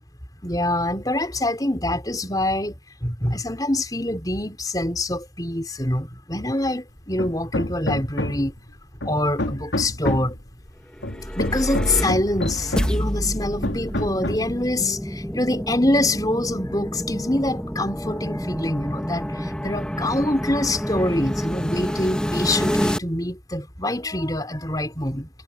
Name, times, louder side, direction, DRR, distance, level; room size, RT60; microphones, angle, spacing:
voice 1, 0.4-8.5 9.0-10.3 11.4-25.3, left 1 dB, 20° left, 4.3 m, -25 dB
Hammer, 7.2-8.6 9.0-10.4 11.0-13.1 13.6-14.6, left 1 dB, 85° left, 2.7 m, -28 dB
sound 1, 10.9-23.0, equal, 5° left, 1.6 m, -28 dB
head